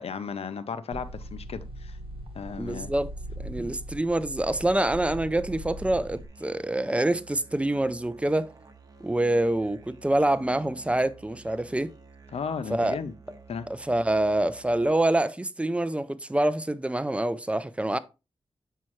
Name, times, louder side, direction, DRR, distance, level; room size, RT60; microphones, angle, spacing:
voice 1, 0.0-2.0 2.3-2.9 12.3-13.1 13.5-13.7, left 6 dB, 85° left, 0.6 m, -35 dB
sound 1, 0.9-6.3, right 1 dB, 65° right, 1.0 m, -40 dB
voice 2, 2.6-3.1 3.4-8.5 9.0-11.9 12.7-13.0 13.7-18.0, right 1 dB, 10° right, 0.4 m, -26 dB
Musical instrument, 5.1-15.3, right 4 dB, 40° right, 0.9 m, -51 dB
7.5 x 5.6 x 3.1 m
wide cardioid pair, 140°, 10 cm